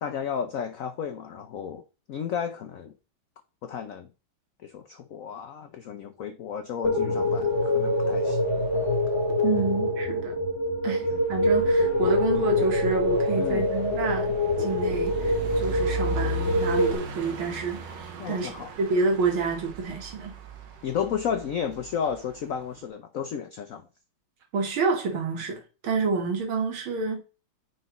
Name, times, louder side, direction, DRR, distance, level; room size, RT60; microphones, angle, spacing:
voice 1, 0.0-1.8 2.1-2.9 3.6-4.1 4.6-8.4 10.8-11.0 13.3-13.7 18.2-18.7 20.8-23.9, left 7 dB, 85° left, 0.7 m, -33 dB
sound 1, 6.8-17.0, left 1 dB, 15° left, 1.0 m, -25 dB
sound 2, 7.2-9.4 11.1-22.8, right 1 dB, 70° right, 1.7 m, -37 dB
voice 2, 9.4-10.3 10.8-20.4 24.5-27.2, right 4 dB, 85° right, 2.2 m, -28 dB
9.5 x 4.7 x 3.0 m
omnidirectional pair, 2.2 m